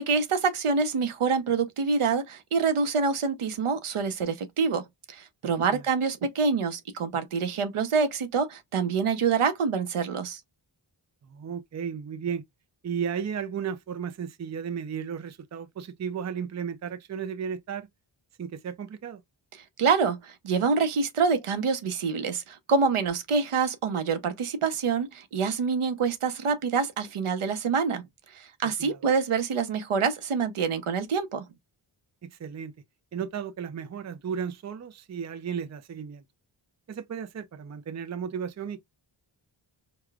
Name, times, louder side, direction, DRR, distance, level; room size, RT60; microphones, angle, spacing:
voice 1, 0.0-10.4 19.8-28.0 28.3-31.4, right 5 dB, 85° right, 0.8 m, -26 dB
voice 2, 11.2-12.4 12.8-17.9 18.4-19.2 28.8-29.0 32.2-32.7 33.1-36.2 36.9-38.8, right 7 dB, 35° right, 0.5 m, -34 dB
4.8 x 2.3 x 2.4 m
wide cardioid pair, 100°, 49 cm